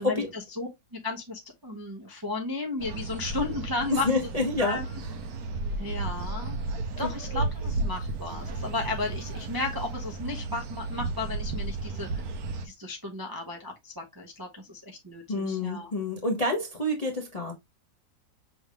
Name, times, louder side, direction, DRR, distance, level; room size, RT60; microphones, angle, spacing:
voice 1, 0.0-4.1 4.6-4.8 5.8-6.6 7.0-12.1 12.6-15.9, left 3 dB, 25° right, 0.4 m, -34 dB
sound 1, 2.8-12.7, right 3 dB, 65° right, 1.1 m, -33 dB
voice 2, 3.9-4.8 15.3-17.5, left 2 dB, 35° left, 0.6 m, -28 dB
6.1 x 3.4 x 2.3 m
omnidirectional pair, 1.9 m